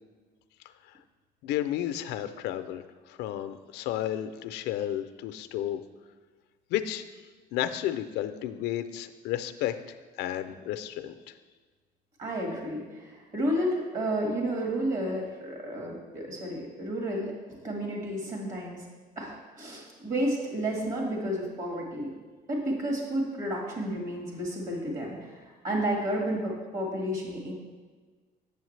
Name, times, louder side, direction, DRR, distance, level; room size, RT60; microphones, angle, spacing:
voice 1, 1.4-5.8 6.7-7.1 7.5-9.8 10.2-11.3, left 12 dB, 85° left, 10 dB, 0.4 m, -32 dB
voice 2, 12.2-18.8 19.2-22.1 22.5-27.5, right 1 dB, 50° right, -1 dB, 1.7 m, -31 dB
8.1 x 7.1 x 3.2 m, 1.4 s
cardioid pair, 110°, 17 cm